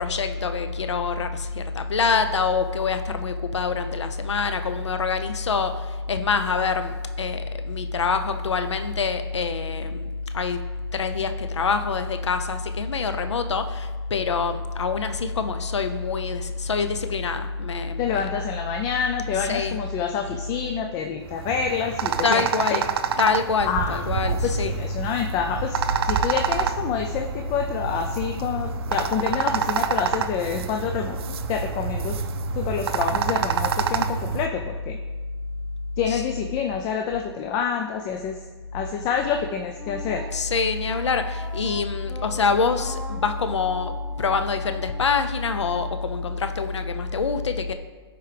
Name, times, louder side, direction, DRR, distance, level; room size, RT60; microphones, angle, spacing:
voice 1, 0.0-10.1 10.3-10.6 10.9-18.3 19.3-19.8 22.2-24.8 36.0-36.2 40.3-43.9 44.2-47.7, left 5 dB, 85° left, 8 dB, 0.6 m, -25 dB
voice 2, 18.0-22.5 22.7-22.8 23.6-25.8 26.0-31.2 31.5-32.2 32.5-35.0 36.0-38.4 38.7-40.3, left 7 dB, 25° left, 4 dB, 0.4 m, -27 dB
sound 1, 21.3-34.5, right 7 dB, 60° right, 0.5 m, -27 dB
Wind instrument woodwind instrument, 39.8-46.7, equal, ahead, 0.8 m, -43 dB
12.0 x 4.6 x 3.3 m, 1.4 s
hypercardioid pair, 130°, 14 cm